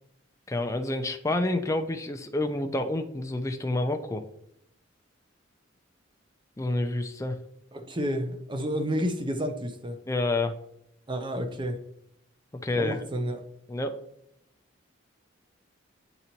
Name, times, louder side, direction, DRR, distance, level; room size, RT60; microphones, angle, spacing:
voice 1, 0.5-4.2 6.6-7.4 10.1-10.5 12.6-13.0 13.7-14.0, left 2 dB, 15° left, 5 dB, 0.5 m, -28 dB
voice 2, 7.7-10.0 11.1-11.8 12.8-13.4, equal, 25° right, 6 dB, 0.7 m, -30 dB
8.4 x 3.9 x 2.9 m, 0.75 s
head